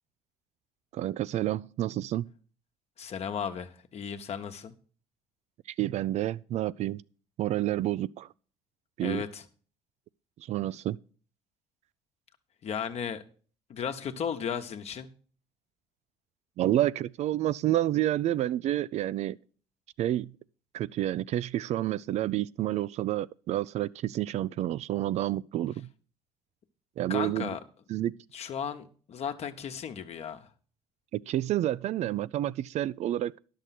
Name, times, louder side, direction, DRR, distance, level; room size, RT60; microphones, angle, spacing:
voice 1, 0.9-2.3 5.8-7.0 7.4-8.3 9.0-9.2 10.5-11.0 16.6-19.4 20.0-20.3 20.7-25.9 27.0-27.5 27.9-28.1 31.1-33.3, right 13 dB, 55° right, 0.4 m, -29 dB
voice 2, 3.0-4.7 9.0-9.4 12.6-13.2 13.7-15.1 27.1-27.6 28.3-30.5, left 7 dB, 50° left, 1.1 m, -35 dB
11.0 x 6.6 x 5.9 m
hypercardioid pair, 65°, 14 cm